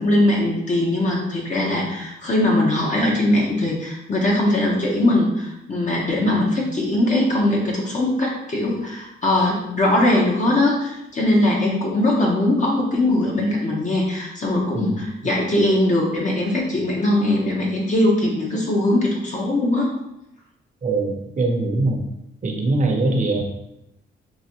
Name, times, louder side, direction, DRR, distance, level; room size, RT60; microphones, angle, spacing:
voice 1, 0.0-19.9, left 1 dB, 35° left, -3 dB, 0.9 m, -20 dB
voice 2, 20.8-22.0 22.4-23.4, right 2 dB, 40° right, 1 dB, 0.8 m, -22 dB
3.9 x 2.5 x 3.0 m, 0.84 s
cardioid pair, 80°, 21 cm